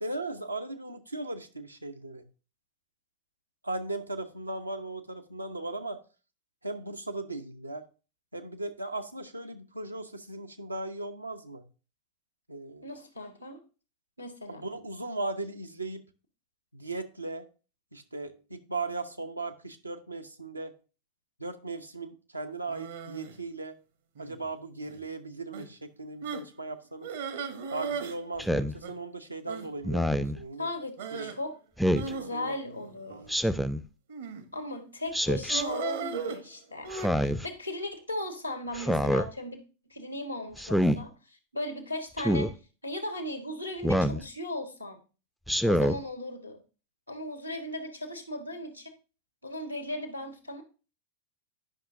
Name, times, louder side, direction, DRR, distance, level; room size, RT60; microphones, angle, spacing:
voice 1, 0.0-2.2 3.6-6.0 6.6-7.9 8.3-11.7 12.5-12.9 14.5-16.0 16.7-17.5 17.9-20.7 21.4-23.8 24.2-27.1 27.7-30.7 31.1-31.3 32.0-32.6 33.1-33.4, right 2 dB, 85° right, 0.7 m, -37 dB
voice 2, 12.8-13.6 14.2-14.6 30.6-31.5 32.0-33.3 34.5-36.9 37.2-39.6 39.9-42.5 42.8-45.0 45.6-46.6 47.1-48.9 49.4-50.6, left 1 dB, 85° left, 1.2 m, -37 dB
sound 1, 22.7-23.4 24.2-24.5 24.9-25.0 25.5-25.7 26.2-26.5 27.0-28.2 28.4-28.5 28.8-28.9 29.5-29.7 31.0-31.4 31.9-33.3 34.1-34.5 35.5-37.1, right 6 dB, 60° right, 0.9 m, -37 dB
Speech synthesizer, 28.4-28.7 29.8-30.4 31.8-32.1 33.3-33.8 35.1-35.6 36.9-37.5 38.7-39.3 40.6-41.0 42.2-42.5 43.8-44.2 45.5-46.0, equal, ahead, 0.4 m, -26 dB
10.0 x 5.6 x 2.6 m
figure-of-eight pair, 90°, 0 cm